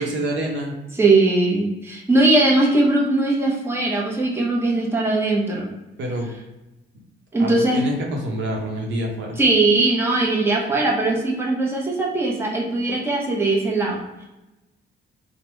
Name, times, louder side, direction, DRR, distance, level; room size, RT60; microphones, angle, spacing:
voice 1, 0.0-0.7 6.0-6.3 7.4-9.4, right 1 dB, 70° right, 0 dB, 0.8 m, -27 dB
voice 2, 0.9-5.7 7.3-7.8 9.4-14.2, right 2 dB, 10° right, -2 dB, 0.7 m, -20 dB
3.2 x 2.1 x 3.1 m, 1.0 s
cardioid pair, 90°, 20 cm